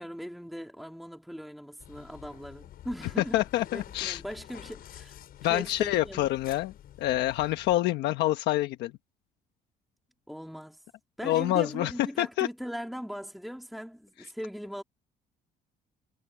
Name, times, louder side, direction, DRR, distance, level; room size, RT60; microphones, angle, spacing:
voice 1, 0.0-6.3 10.3-10.8 11.2-14.8, equal, ahead, 2.7 m, -40 dB
sound 1, 1.8-7.8, left 11 dB, 65° left, 6.3 m, -49 dB
voice 2, 3.3-4.2 5.4-6.7 7.0-8.9 11.2-11.9 12.2-12.5, left 15 dB, 85° left, 1.2 m, -27 dB
cardioid pair, 110°, 17 cm